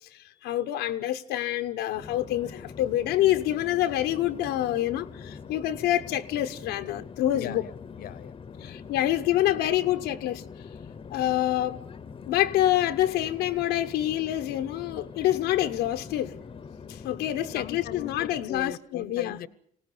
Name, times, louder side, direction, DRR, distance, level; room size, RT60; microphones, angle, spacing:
voice 1, 0.1-7.6 8.6-10.5 11.1-11.9 12.3-16.4 16.9-19.4, left 13 dB, 85° left, 1.0 m, -27 dB
Conversation / Chatter / Fixed-wing aircraft airplane, 1.9-18.6, left 6 dB, 30° left, 0.9 m, -43 dB
voice 2, 7.3-8.8 17.5-19.5, left 10 dB, 60° left, 0.9 m, -40 dB
25.5 x 17.5 x 8.4 m
cardioid pair, 110°, 17 cm